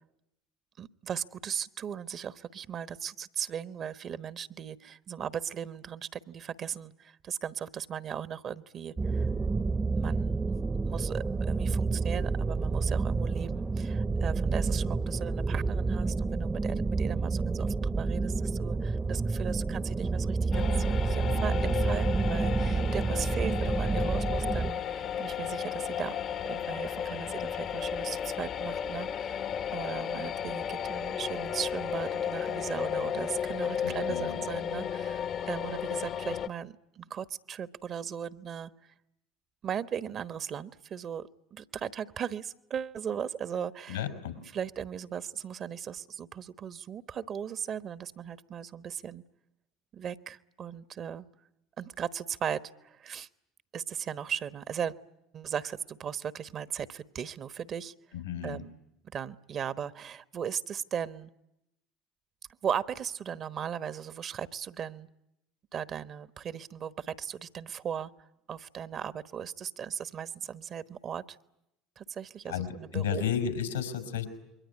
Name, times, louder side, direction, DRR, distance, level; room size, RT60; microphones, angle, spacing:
voice 1, 0.8-9.3 10.0-10.4 10.8-26.2 26.5-29.4 29.7-38.7 39.6-44.1 44.5-49.2 49.9-51.2 51.8-53.3 53.7-54.9 55.3-57.9 58.4-58.7 59.1-61.3 62.6-65.1 65.7-68.1 68.5-71.4 72.0-73.2, right 8 dB, 45° right, 14 dB, 1.1 m, -37 dB
sound 1, 9.0-24.7, right 4 dB, 20° right, 1.0 m, -29 dB
sound 2, 20.5-36.5, left 8 dB, 50° left, 1.1 m, -34 dB
voice 2, 33.8-34.4 43.9-44.3 58.1-58.6 72.5-74.3, left 8 dB, 85° left, 7 dB, 4.6 m, -33 dB
27.5 x 22.5 x 9.6 m, 0.84 s
hypercardioid pair, 70°, 0 cm